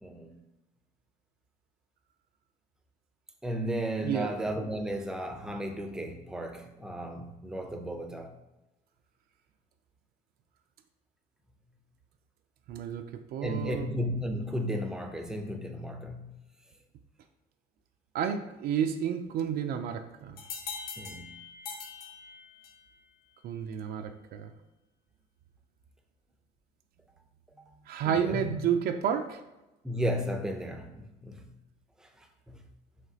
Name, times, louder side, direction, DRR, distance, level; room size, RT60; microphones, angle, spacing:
voice 1, 0.0-0.3 3.4-8.3 13.4-16.3 21.0-21.3 28.0-28.5 29.8-31.5 32.0-32.6, equal, 5° right, 0.5 m, -34 dB
voice 2, 4.0-4.4 12.7-14.0 18.1-20.4 23.4-24.5 27.9-29.4, right 8 dB, 65° right, 0.4 m, -31 dB
sound 1, 20.4-22.9, left 5 dB, 65° left, 0.9 m, -42 dB
5.0 x 3.2 x 2.7 m
cardioid pair, 110°, 17 cm